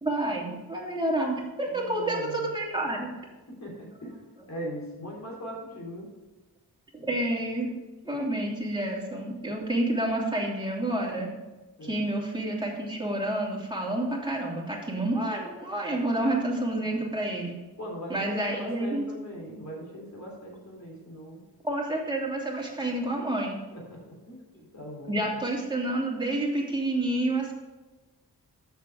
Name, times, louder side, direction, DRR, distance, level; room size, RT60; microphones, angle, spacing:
voice 1, 0.0-3.1 7.0-7.7 8.0-11.3 11.8-17.5 18.1-19.0 21.6-23.6 25.1-27.5, right 1 dB, 10° right, -3 dB, 2.9 m, -29 dB
voice 2, 1.7-2.5 3.6-4.1 4.5-6.1 11.8-12.0 17.8-21.4 23.0-23.2 23.7-24.0 24.3-24.4 24.7-25.2, equal, 40° left, -3 dB, 3.5 m, -39 dB
6.7 x 6.6 x 6.2 m, 1.1 s
cardioid pair, 50°, 40 cm